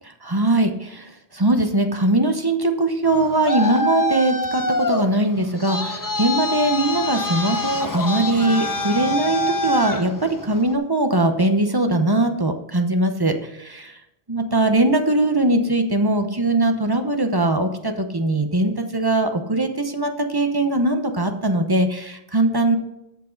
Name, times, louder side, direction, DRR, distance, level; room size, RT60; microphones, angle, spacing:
voice 1, 0.2-14.0 14.3-22.8, right 2 dB, 20° right, 6 dB, 0.9 m, -21 dB
Traffic noise roadway noise, 3.0-10.8, left 1 dB, 20° left, 0.6 m, -25 dB
13.0 x 7.5 x 4.0 m, 0.86 s
omnidirectional pair, 1.2 m